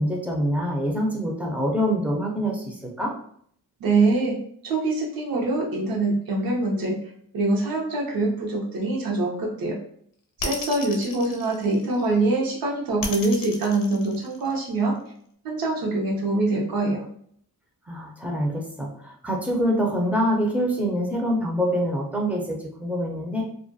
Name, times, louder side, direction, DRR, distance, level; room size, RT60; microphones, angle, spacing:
voice 1, 0.0-3.1 17.9-23.4, equal, 5° right, -1 dB, 0.4 m, -25 dB
voice 2, 3.8-7.0 7.3-9.8 10.4-14.9 15.4-17.1, right 2 dB, 75° right, -1 dB, 0.8 m, -24 dB
sound 1, 10.4-12.2 13.0-14.8, left 3 dB, 65° left, 0.6 m, -33 dB
2.3 x 2.2 x 2.5 m, 0.64 s
wide cardioid pair, 150°, 35 cm